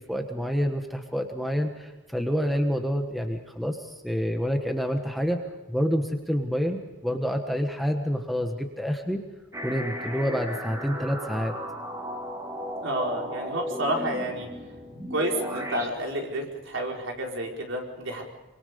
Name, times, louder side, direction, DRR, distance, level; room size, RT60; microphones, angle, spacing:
voice 1, 0.0-5.4 5.7-9.2 9.6-11.5, equal, ahead, 4 dB, 1.4 m, -28 dB
sound 1, 9.5-15.9, equal, 15° right, 2.6 m, -35 dB
voice 2, 12.8-14.5 15.1-18.2, right 1 dB, 65° right, 0 dB, 4.7 m, -30 dB
25.5 x 25.5 x 5.3 m, 1.1 s
head